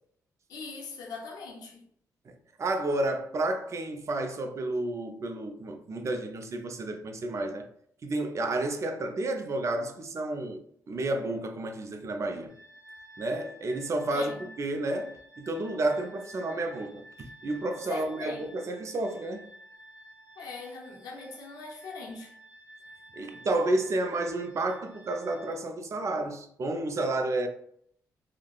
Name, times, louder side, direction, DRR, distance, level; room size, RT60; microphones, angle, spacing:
voice 1, 0.5-1.8 14.1-14.5 17.9-18.5 20.4-22.3, left 4 dB, 85° left, 0.6 m, -40 dB
voice 2, 2.6-7.7 8.0-12.5 13.2-19.5 23.2-27.5, right 2 dB, 50° right, 0.5 m, -31 dB
sound 1, 12.5-25.5, equal, 15° right, 1.2 m, -52 dB
3.2 x 2.0 x 2.3 m
cardioid pair, 65°, 7 cm